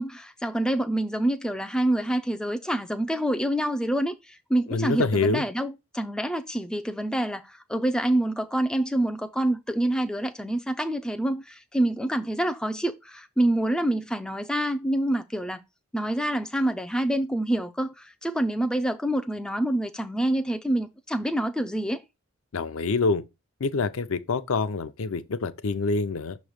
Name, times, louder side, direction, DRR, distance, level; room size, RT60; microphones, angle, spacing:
voice 1, 0.0-15.6 15.9-22.0, right 1 dB, 5° left, 0.3 m, -27 dB
voice 2, 4.7-5.5 22.5-23.2 23.6-26.4, left 3 dB, 75° left, 0.5 m, -26 dB
6.2 x 3.1 x 5.0 m
head